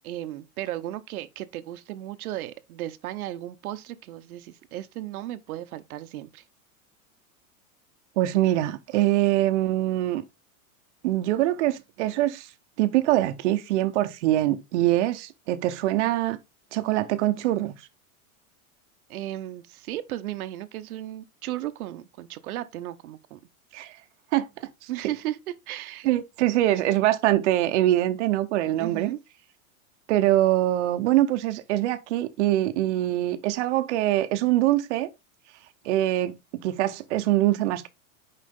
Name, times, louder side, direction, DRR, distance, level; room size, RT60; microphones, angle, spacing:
voice 1, 0.0-6.4 19.1-23.4 24.9-25.4 25.7-26.1 28.8-29.2, right 14 dB, 85° right, 0.9 m, -35 dB
voice 2, 8.2-10.2 11.0-12.5 12.8-16.4 16.7-17.7 23.7-24.0 24.3-24.5 26.0-29.1 30.1-35.1 35.8-36.3 36.6-37.9, right 14 dB, 55° right, 0.8 m, -23 dB
6.4 x 4.9 x 3.5 m
supercardioid pair, 170°, 42 cm